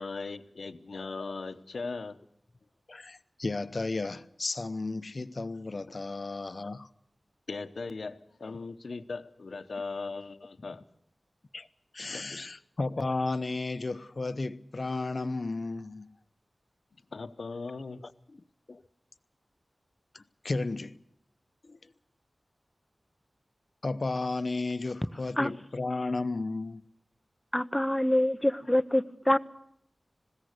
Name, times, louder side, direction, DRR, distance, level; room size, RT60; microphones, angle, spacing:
voice 1, 0.0-2.2 7.5-10.8 12.1-12.5 17.1-18.1, left 4 dB, 85° left, 0.9 m, -38 dB
voice 2, 2.9-6.9 11.5-11.7 11.9-16.1 18.7-18.8 20.1-21.0 21.6-21.8 23.8-26.8, left 3 dB, 55° left, 0.8 m, -33 dB
voice 3, 27.5-29.4, left 1 dB, 15° left, 0.7 m, -25 dB
20.5 x 16.5 x 8.1 m
wide cardioid pair, 75°, 0 cm